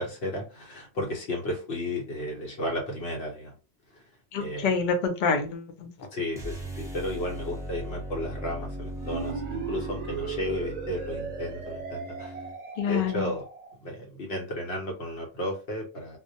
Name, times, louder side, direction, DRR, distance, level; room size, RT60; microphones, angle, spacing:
voice 1, 0.0-3.6 3.9-4.0 4.4-4.7 6.1-12.4 12.9-13.4 13.8-16.2, left 1 dB, 80° left, -1 dB, 1.0 m, -33 dB
voice 2, 4.3-5.9 12.8-13.3, left 5 dB, 60° left, 6 dB, 0.6 m, -27 dB
sound 1, 6.3-12.6, right 1 dB, 5° right, 0.6 m, -38 dB
sound 2, 9.0-13.7, right 6 dB, 55° right, 0.5 m, -37 dB
2.2 x 2.1 x 2.6 m, 0.32 s
omnidirectional pair, 1.0 m